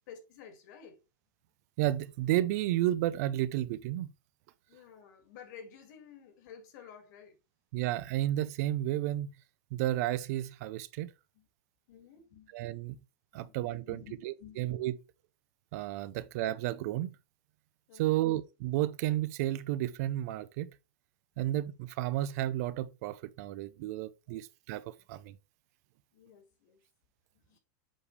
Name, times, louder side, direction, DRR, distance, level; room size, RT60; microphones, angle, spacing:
voice 1, 0.1-1.0 4.7-7.4 11.3-11.5 11.9-12.8 13.3-14.6 17.9-18.2 23.4-23.5 24.3-24.4 25.0-25.1 26.1-26.8 27.3-27.6, left 7 dB, 60° left, 2.1 m, -53 dB
voice 2, 1.8-4.1 7.7-9.3 9.7-11.1 12.5-13.0 13.3-14.9 15.7-17.1 18.0-20.7 21.4-25.4, right 14 dB, 50° right, 0.5 m, -32 dB
7.5 x 4.9 x 3.3 m
supercardioid pair, 170°, 11 cm